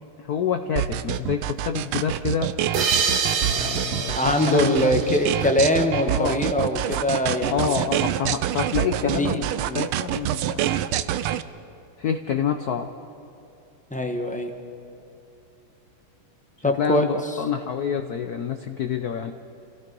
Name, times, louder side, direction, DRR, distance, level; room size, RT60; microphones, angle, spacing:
voice 1, 0.2-2.6 3.4-4.9 6.1-6.4 7.5-9.5 9.7-10.7 12.0-12.9 16.8-19.3, left 7 dB, 60° left, 7 dB, 1.0 m, -27 dB
sound 1, 0.8-11.4, right 12 dB, 85° right, 1.5 m, -26 dB
sound 2, 2.7-6.1, right 6 dB, 55° right, 1.4 m, -27 dB
voice 2, 4.2-7.8 9.0-9.8 13.9-14.5 16.6-17.0, left 1 dB, 5° left, 4 dB, 0.9 m, -23 dB
29.0 x 17.0 x 5.4 m, 2.9 s
omnidirectional pair, 2.4 m